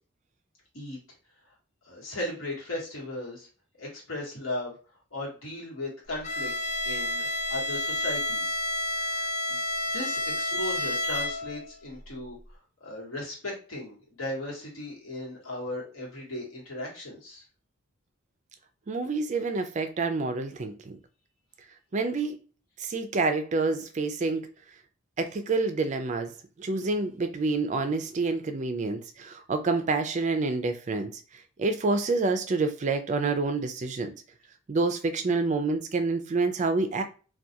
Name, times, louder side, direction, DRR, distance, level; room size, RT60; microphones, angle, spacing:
voice 1, 1.8-3.5 3.8-4.7 5.1-6.5 6.8-8.6 9.0-9.6 9.9-12.4 12.8-17.4, left 1 dB, 70° left, 1.2 m, -37 dB
Bowed string instrument, 6.2-11.7, left 1 dB, 35° left, 0.5 m, -30 dB
voice 2, 18.9-21.0 21.9-22.4 22.8-24.5 25.2-34.1 34.7-37.0, right 3 dB, 35° right, 0.3 m, -28 dB
2.3 x 2.2 x 2.7 m
head